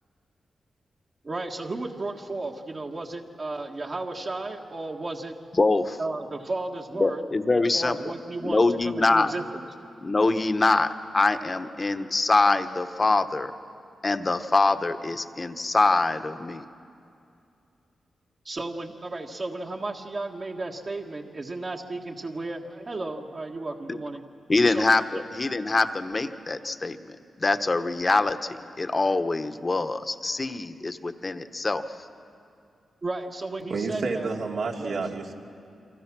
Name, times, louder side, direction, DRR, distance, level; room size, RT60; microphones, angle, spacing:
voice 1, 1.2-5.3 6.0-7.2 7.5-9.6 18.4-24.2 24.7-24.9 25.1-25.2 33.0-34.3 34.8-35.0, right 2 dB, 45° right, 0 dB, 1.7 m, -34 dB
voice 2, 5.6-6.0 7.0-8.0 8.4-9.3 10.0-13.5 14.0-16.6 23.9-24.0 24.5-31.8, left 3 dB, 35° left, 10 dB, 1.2 m, -24 dB
voice 3, 33.7-35.3, right 4 dB, 75° right, 1 dB, 2.6 m, -29 dB
29.0 x 24.5 x 6.2 m, 2.5 s
cardioid pair, 65°, 0 cm